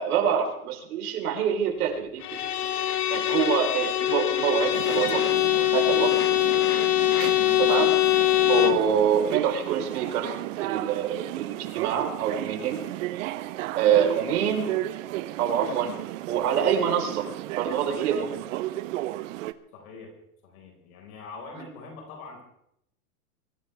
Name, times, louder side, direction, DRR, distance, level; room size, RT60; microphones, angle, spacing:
voice 1, 0.0-5.3 5.7-6.2 7.6-7.9 8.5-10.3 10.6-12.9 13.1-13.3 13.7-14.7 15.4-16.0 16.3-17.2 17.6-18.4 21.5-21.6, right 8 dB, 75° right, 2 dB, 4.5 m, -26 dB
Bowed string instrument, 2.2-8.9, left 15 dB, 85° left, 1.8 m, -23 dB
sound 1, 4.7-19.5, right 16 dB, 60° right, 1.0 m, -34 dB
voice 2, 7.3-7.7 19.7-20.1 20.4-22.4, left 4 dB, 70° left, 1 dB, 5.2 m, -43 dB
24.0 x 15.0 x 3.5 m, 0.75 s
supercardioid pair, 150°, 45 cm